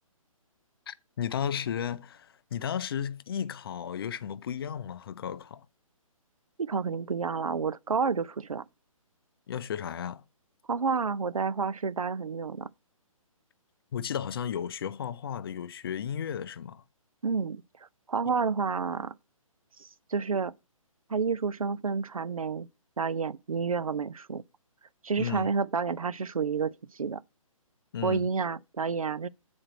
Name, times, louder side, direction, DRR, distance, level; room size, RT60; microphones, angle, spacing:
voice 1, 0.9-5.7 9.5-10.2 13.9-16.8 25.2-25.5 27.9-28.3, left 8 dB, 40° left, 0.5 m, -34 dB
voice 2, 6.6-8.6 10.7-12.7 17.2-17.6 18.1-19.1 19.8-20.5 21.1-22.7 23.0-24.4 25.0-27.2 28.0-29.3, right 5 dB, 75° right, 0.6 m, -30 dB
8.7 x 4.4 x 5.8 m
figure-of-eight pair, 135°, 18 cm